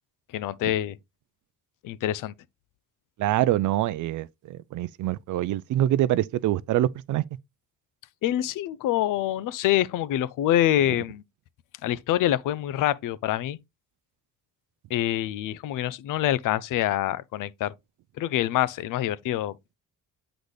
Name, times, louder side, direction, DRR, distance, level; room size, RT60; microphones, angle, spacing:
voice 1, 0.3-1.0 1.8-2.3 8.2-11.2 11.8-13.6 14.9-17.7 18.2-19.5, left 13 dB, 70° left, 0.5 m, -26 dB
voice 2, 3.2-7.2, right 13 dB, 65° right, 0.4 m, -25 dB
8.0 x 3.9 x 3.3 m
cardioid pair, 150°, 33 cm